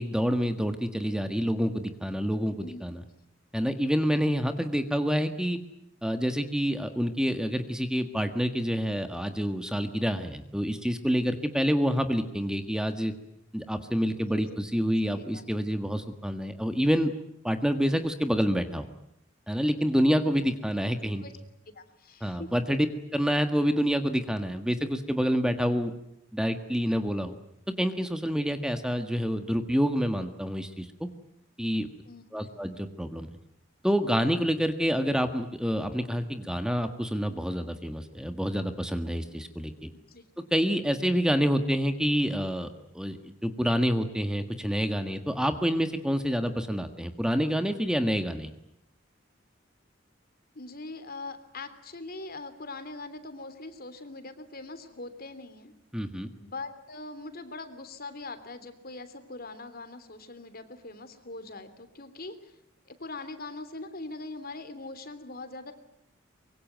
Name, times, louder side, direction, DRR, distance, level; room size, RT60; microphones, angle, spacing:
voice 1, 0.0-3.0 3.5-5.6 6.0-13.1 13.5-17.1 17.4-18.9 19.5-21.2 22.2-22.9 23.1-25.9 26.3-27.4 27.8-31.1 31.6-31.9 32.3-33.4 33.8-39.9 40.5-42.7 42.9-48.5 55.9-56.3, equal, 5° right, 8 dB, 1.6 m, -27 dB
voice 2, 21.7-22.5 32.0-32.2 32.5-32.7 40.1-40.2 50.5-55.7 56.3-62.5 62.8-65.7, left 2 dB, 50° left, 11 dB, 3.2 m, -42 dB
24.5 x 23.5 x 9.3 m, 0.76 s
head